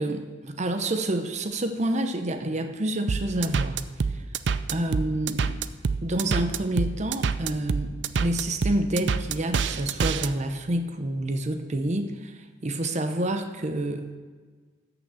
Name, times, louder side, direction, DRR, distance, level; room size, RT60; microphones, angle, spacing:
voice 1, 0.0-3.8 4.1-4.2 4.7-5.6 6.0-14.1, right 1 dB, 40° right, 6 dB, 0.8 m, -28 dB
sound 1, 3.1-10.3, right 5 dB, 65° right, 0.5 m, -26 dB
14.0 x 6.0 x 6.8 m, 1.5 s
head